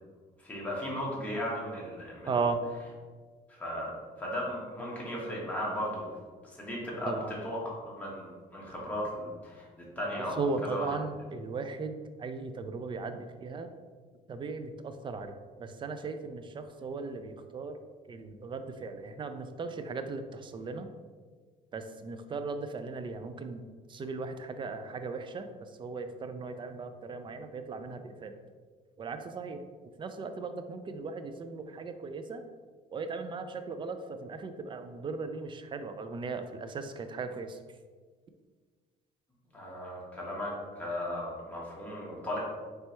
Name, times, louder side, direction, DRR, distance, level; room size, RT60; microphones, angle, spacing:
voice 1, 0.4-2.3 3.5-3.9 4.2-6.1 6.4-7.6 7.8-10.9 39.5-42.4, left 1 dB, 10° left, -5 dB, 1.4 m, -36 dB
voice 2, 2.3-2.6 7.1-7.4 10.2-13.7 14.3-15.3 15.6-17.8 18.1-20.9 21.7-23.6 23.9-25.5 25.8-28.3 29.0-29.6 30.0-32.4 32.9-37.6, right 4 dB, 30° right, 8 dB, 0.4 m, -37 dB
4.4 x 3.3 x 3.0 m, 1.5 s
cardioid pair, 110°, 17 cm